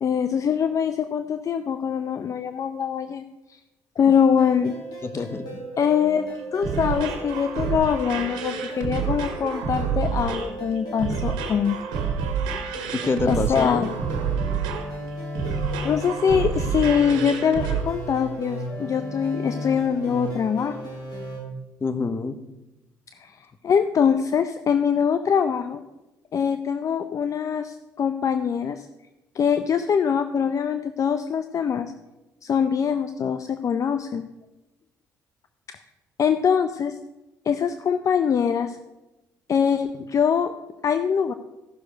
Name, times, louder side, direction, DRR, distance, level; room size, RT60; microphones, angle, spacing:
voice 1, 0.0-3.2 3.5-3.6 4.0-4.7 5.8-11.8 13.3-13.9 15.8-20.8 23.2-25.8 26.3-28.9 29.3-31.9 32.4-34.2 35.7-35.8 36.2-36.9 37.5-38.8 39.5-40.5 40.8-41.3, left 7 dB, 50° left, 10 dB, 0.6 m, -23 dB
sound 1, 4.1-21.4, right 1 dB, 70° left, 4.6 m, -36 dB
voice 2, 5.0-5.6 12.9-13.9 21.8-22.4, left 4 dB, 35° left, 12 dB, 1.0 m, -27 dB
sound 2, 6.3-17.8, right 7 dB, 90° right, 1.6 m, -29 dB
14.5 x 6.4 x 5.2 m, 1.0 s
supercardioid pair, 65°, 7 cm